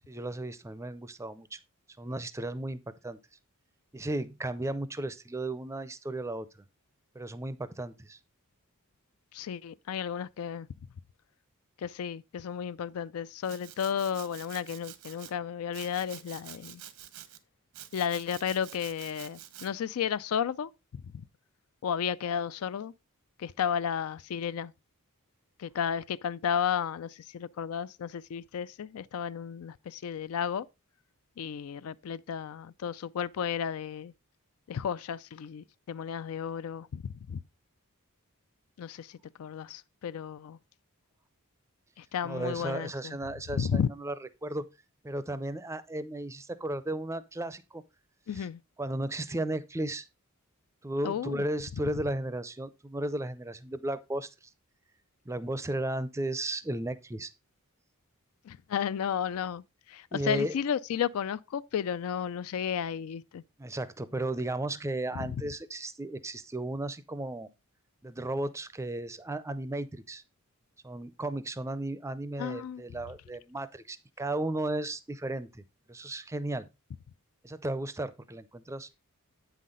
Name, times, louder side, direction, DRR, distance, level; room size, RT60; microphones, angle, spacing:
voice 1, 0.1-1.6 2.0-3.2 3.9-6.5 7.1-8.2 42.2-44.1 44.4-44.7 45.0-47.8 48.4-48.5 48.8-50.1 50.8-54.3 55.3-57.3 60.1-60.5 63.6-67.5 68.0-70.2 70.8-75.6 75.9-76.7 77.4-78.9, right 1 dB, 15° right, 0.5 m, -34 dB
voice 2, 9.3-10.7 11.8-16.8 17.9-21.2 21.8-22.9 23.4-24.7 25.6-30.7 31.4-34.1 34.7-37.4 38.8-40.6 42.0-43.2 43.5-43.9 48.3-48.6 51.0-51.4 58.4-63.4 65.1-65.4 72.4-73.0, left 8 dB, 70° left, 0.4 m, -33 dB
Domestic sounds home sounds, 13.4-15.3 15.7-17.4 17.7-19.7, right 11 dB, 80° right, 0.9 m, -48 dB
8.3 x 5.7 x 3.8 m
head